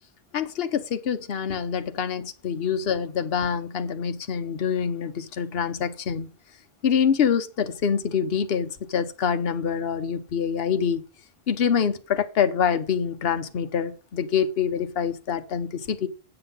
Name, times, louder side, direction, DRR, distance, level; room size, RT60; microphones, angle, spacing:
voice 1, 0.3-6.3 6.8-11.0 11.5-16.1, left 7 dB, 60° left, 1.1 m, -25 dB
7.8 x 7.8 x 5.4 m
omnidirectional pair, 1.2 m